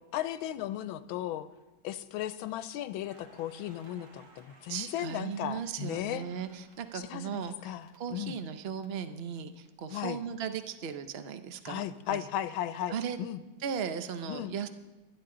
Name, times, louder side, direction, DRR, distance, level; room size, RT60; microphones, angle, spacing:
voice 1, 0.1-1.5 1.8-6.2 6.9-8.3 9.9-10.2 11.7-13.4 14.3-14.5, left 12 dB, 85° left, 13 dB, 1.5 m, -36 dB
Crackle, 3.0-8.8 9.1-10.9, right 3 dB, 85° right, 2.8 m, -61 dB
voice 2, 4.7-12.2 12.9-13.2 13.6-14.7, right 7 dB, 65° right, 9 dB, 0.6 m, -37 dB
23.5 x 10.5 x 3.8 m, 1.1 s
omnidirectional pair, 2.2 m